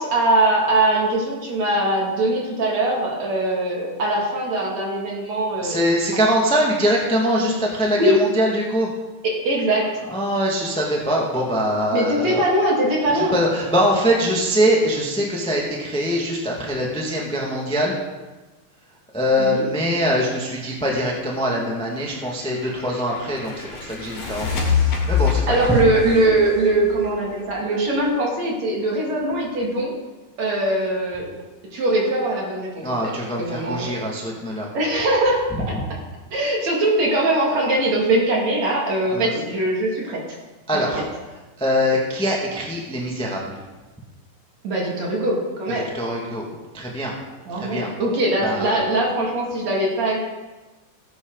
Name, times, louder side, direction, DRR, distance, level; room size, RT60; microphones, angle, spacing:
voice 1, 0.0-5.9 7.4-7.5 8.0-8.2 9.2-9.9 11.9-13.4 19.4-19.6 25.5-29.9 30.4-31.4 31.7-33.1 33.4-33.9 34.7-35.8 36.3-40.2 41.0-41.1 44.6-45.9 47.5-50.2, right 1 dB, 55° right, -2 dB, 3.7 m, -21 dB
voice 2, 5.6-8.9 10.1-12.4 13.1-18.0 19.1-24.6 25.1-25.6 32.8-34.7 39.1-39.3 40.7-41.0 41.6-43.6 45.9-46.4 46.7-47.1 47.5-47.9 48.4-48.7, equal, 5° left, -2 dB, 1.2 m, -23 dB
sound 1, 22.0-27.8, left 6 dB, 65° left, 4.2 m, -26 dB
18.0 x 9.3 x 4.1 m, 1.2 s
omnidirectional pair, 3.9 m